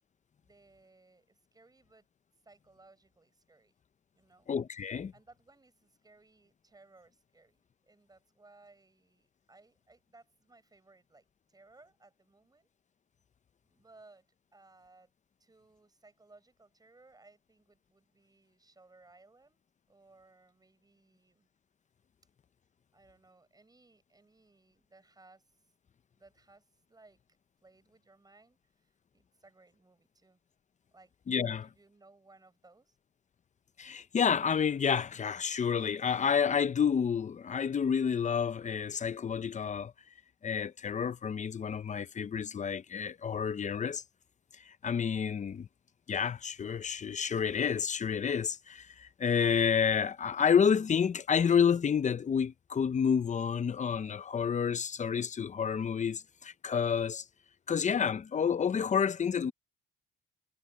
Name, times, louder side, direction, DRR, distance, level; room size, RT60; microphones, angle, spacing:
voice 1, 0.4-2.1 2.4-3.7 4.1-4.5 5.1-12.7 13.6-14.3 14.5-15.1 15.4-21.5 22.9-25.5 26.1-27.2 27.6-30.4 30.9-31.1 31.6-33.0, right 3 dB, 20° right, 6.6 m, -61 dB
voice 2, 4.5-5.1 31.3-31.7 33.8-39.9 40.4-44.0 44.7-45.7 46.1-57.2 57.7-59.5, left 7 dB, 35° left, 0.8 m, -29 dB
cardioid pair, 90°, 20 cm